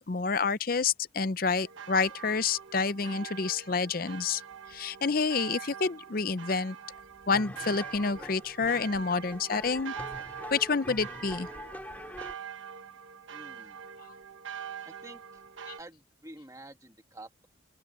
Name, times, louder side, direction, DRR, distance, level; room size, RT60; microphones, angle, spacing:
voice 1, 0.0-4.4 4.7-6.8 7.3-9.9 10.5-11.5 15.7-15.8, left 4 dB, 45° left, 0.6 m, -28 dB
sound 1, 1.6-15.8, right 7 dB, 80° right, 1.2 m, -44 dB
sound 2, 7.3-12.3, left 1 dB, 10° left, 2.2 m, -44 dB
voice 2, 13.3-13.8 14.9-15.4 15.8-17.5, right 1 dB, 15° right, 1.8 m, -49 dB
open air
head